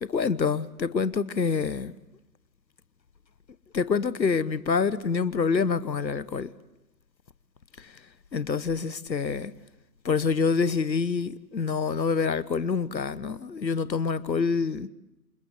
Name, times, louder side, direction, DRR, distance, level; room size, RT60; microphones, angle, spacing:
voice 1, 0.0-1.9 3.7-6.5 8.3-9.5 10.0-14.9, left 5 dB, 90° left, 1.2 m, -26 dB
27.0 x 21.0 x 8.0 m
figure-of-eight pair, 145°, 50 cm